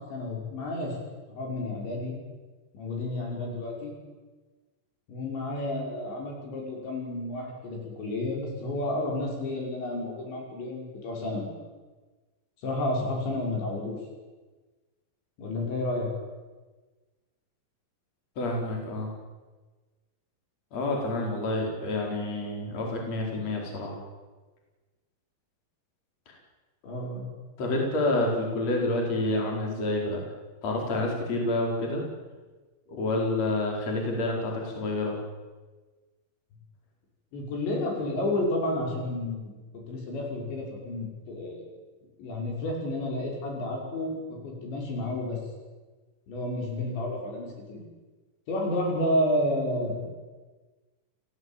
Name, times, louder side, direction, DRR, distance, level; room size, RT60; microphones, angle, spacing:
voice 1, 0.1-1.0 1.3-2.2 2.7-3.9 5.1-11.5 12.6-14.0 15.4-16.1 26.8-27.3 37.3-39.5 39.9-41.7 42.2-45.4 46.3-47.8 48.5-50.1, left 1 dB, 75° left, 0 dB, 8.1 m, -31 dB
voice 2, 18.4-19.1 20.7-23.9 27.6-30.2 30.6-32.0 32.9-35.2, left 2 dB, 35° left, 0 dB, 5.4 m, -28 dB
30.0 x 16.5 x 9.1 m, 1.3 s
omnidirectional pair, 5.1 m